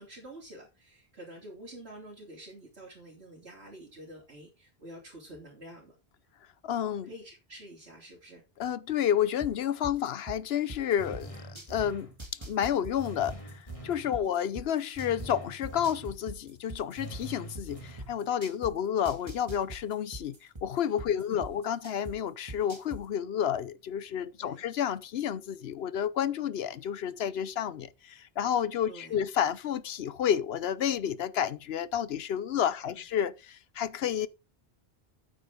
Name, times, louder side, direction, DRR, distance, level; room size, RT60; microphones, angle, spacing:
voice 1, 0.0-6.0 7.0-8.4 14.1-14.3 21.1-21.4 24.4-24.6 28.9-29.2 32.8-33.0, right 1 dB, 80° right, 3.7 m, -48 dB
voice 2, 6.6-7.1 8.6-11.3 11.7-20.4 20.6-34.3, left 9 dB, 75° left, 0.9 m, -30 dB
sound 1, 9.4-11.9 12.2-15.3 15.6-18.7 19.0-22.1 22.5-23.0, right 1 dB, 25° right, 2.0 m, -42 dB
sound 2, 11.0-12.2 13.0-14.1 15.0-16.2 17.0-18.2, right 1 dB, 30° left, 2.7 m, -44 dB
8.8 x 8.8 x 3.7 m
omnidirectional pair, 1.1 m